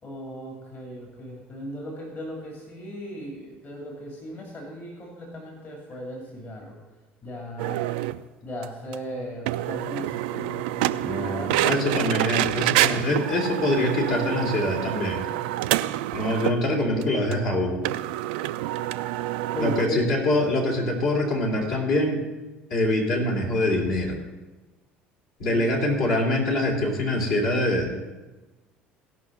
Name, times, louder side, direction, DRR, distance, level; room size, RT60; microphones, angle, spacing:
voice 1, 0.0-6.7 7.2-7.9 8.4-12.0 19.5-20.0 25.5-25.7, equal, 35° left, -1 dB, 2.7 m, -37 dB
sound 1, 7.6-8.2 8.6-8.7 8.9-9.0 9.5-16.6 17.0-17.1 17.3-17.4 17.8-19.9, right 15 dB, 60° right, 0.4 m, -27 dB
voice 2, 11.0-15.3 16.1-17.8 19.6-22.2 22.7-24.2 25.4-28.0, left 1 dB, 55° left, -3 dB, 3.2 m, -24 dB
17.0 x 5.9 x 6.4 m, 1.2 s
figure-of-eight pair, 60°, 6 cm